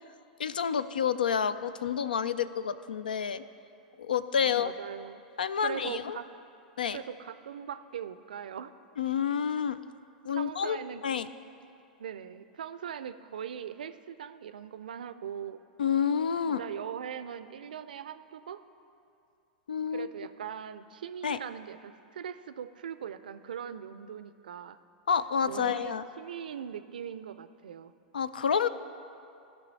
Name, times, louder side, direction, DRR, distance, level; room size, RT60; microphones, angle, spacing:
voice 1, 0.4-3.4 4.0-4.7 5.4-6.2 6.8-7.0 9.0-9.8 10.3-11.3 15.8-16.6 19.7-20.1 21.2-21.4 25.1-26.0 28.1-28.7, left 7 dB, 80° left, 15 dB, 0.4 m, -29 dB
voice 2, 4.4-5.2 5.6-6.2 6.9-8.7 10.4-11.0 12.0-15.6 16.6-18.6 19.9-24.8 25.4-27.9, right 8 dB, 75° right, 12 dB, 0.4 m, -40 dB
15.5 x 5.7 x 4.1 m, 2.6 s
figure-of-eight pair, 95°, 5 cm